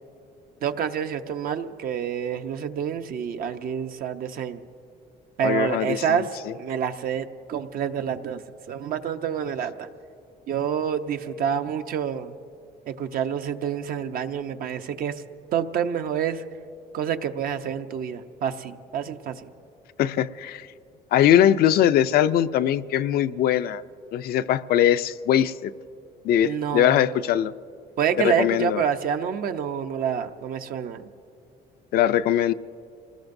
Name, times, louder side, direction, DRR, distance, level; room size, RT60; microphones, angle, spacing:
voice 1, 0.6-4.6 5.4-8.4 8.7-9.9 10.5-12.3 12.9-15.2 15.5-16.4 16.9-19.5 26.4-27.0 28.0-31.1, right 8 dB, 60° right, 8 dB, 0.7 m, -28 dB
voice 2, 5.4-6.5 20.0-20.7 21.1-23.8 24.1-25.7 26.2-27.5 28.2-28.8 31.9-32.5, left 11 dB, 65° left, 12 dB, 0.5 m, -21 dB
26.5 x 19.5 x 2.6 m, 2.6 s
cardioid pair, 110°, 17 cm